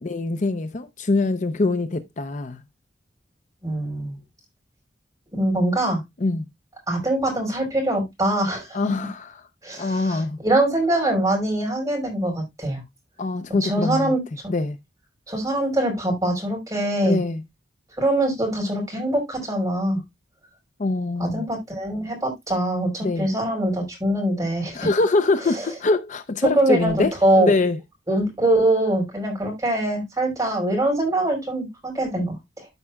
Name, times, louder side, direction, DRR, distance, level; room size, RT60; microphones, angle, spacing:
voice 1, 0.0-2.6 6.2-6.4 8.7-9.5 9.8-10.4 13.2-14.1 14.5-14.8 17.0-17.4 20.8-21.5 23.0-23.3 24.7-27.8, left 3 dB, 45° left, 0.6 m, -24 dB
voice 2, 3.6-4.2 5.3-6.0 6.9-8.8 9.6-12.8 13.6-14.2 15.3-17.2 18.0-20.0 21.2-24.9 25.5-25.7 26.5-27.5 28.1-32.7, right 1 dB, 20° right, 4.9 m, -23 dB
13.5 x 5.5 x 2.3 m
head